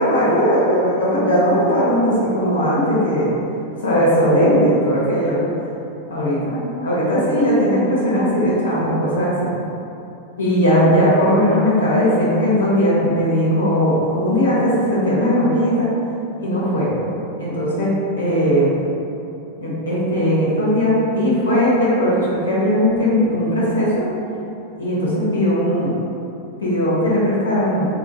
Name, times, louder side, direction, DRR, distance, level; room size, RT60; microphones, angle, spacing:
voice 1, 0.0-3.3 3.8-5.4 6.1-9.3 10.4-15.9 16.4-16.9 17.4-18.7 19.6-22.2 22.5-24.0 24.8-25.9 26.6-27.9, equal, 70° left, -7 dB, 0.9 m, -18 dB
4.4 x 2.4 x 2.7 m, 2.8 s
figure-of-eight pair, 90°, 0 cm